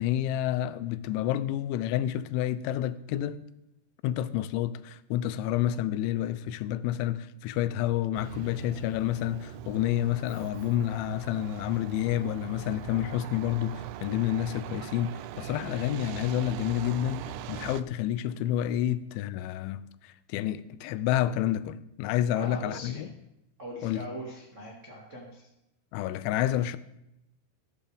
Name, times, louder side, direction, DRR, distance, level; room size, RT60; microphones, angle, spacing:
voice 1, 0.0-3.4 4.0-23.1 23.8-24.1 25.9-26.8, left 12 dB, 90° left, 3.0 m, -29 dB
Truck, 8.2-17.8, right 12 dB, 85° right, 2.9 m, -41 dB
voice 2, 22.3-23.1 23.6-25.5, equal, 55° right, 0.8 m, -41 dB
14.0 x 13.5 x 3.4 m
omnidirectional pair, 5.3 m